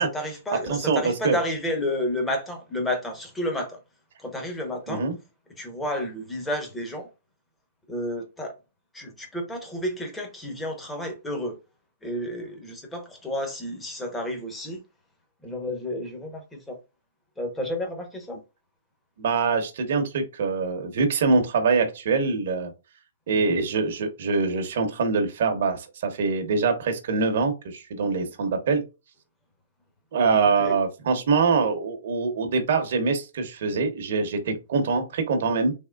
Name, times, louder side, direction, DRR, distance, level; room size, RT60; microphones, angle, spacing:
voice 1, 0.0-3.8 4.2-5.0 5.6-7.1 7.9-8.5 8.9-11.6 12.0-14.8 15.4-16.8 17.4-18.4 23.3-23.6 30.6-30.8, left 1 dB, 5° left, 0.9 m, -31 dB
voice 2, 0.7-1.4 4.9-5.1 19.2-22.7 23.3-28.8 30.1-35.7, right 4 dB, 55° right, 0.9 m, -24 dB
3.5 x 3.0 x 2.3 m
hypercardioid pair, 155°, 0 cm